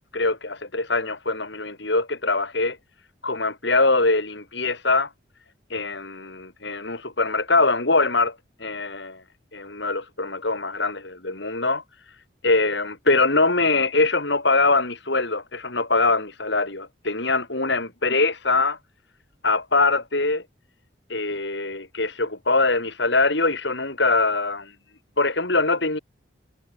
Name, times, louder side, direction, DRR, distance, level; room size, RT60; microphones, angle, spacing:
voice 1, 0.1-2.8 3.2-5.1 5.7-8.3 8.6-9.2 9.5-11.8 12.4-18.8 19.4-20.4 21.1-24.7 25.2-26.0, left 3 dB, 65° left, 4.5 m, -23 dB
head